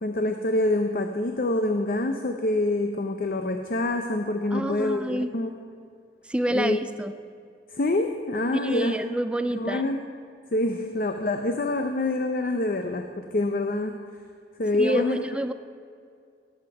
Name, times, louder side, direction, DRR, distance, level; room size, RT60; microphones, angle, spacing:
voice 1, 0.0-5.5 6.5-6.8 7.7-9.0 9.6-10.0 10.5-14.0 14.6-15.2, left 2 dB, 50° left, 5 dB, 0.6 m, -26 dB
voice 2, 4.5-5.3 6.2-7.1 8.6-9.8 14.8-15.5, equal, 5° right, 10 dB, 0.3 m, -28 dB
18.5 x 8.0 x 4.8 m, 2.3 s
head